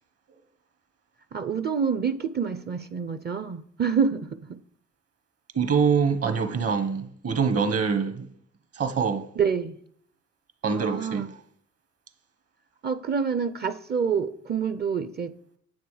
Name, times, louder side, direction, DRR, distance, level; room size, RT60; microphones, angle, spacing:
voice 1, 1.3-4.6 9.4-9.8 10.7-11.3 12.8-15.3, right 6 dB, 35° right, 0.6 m, -27 dB
voice 2, 5.5-8.3 8.7-9.2 10.6-11.4, right 6 dB, 50° right, 1.4 m, -24 dB
9.3 x 7.4 x 4.9 m
cardioid pair, 90°, 30 cm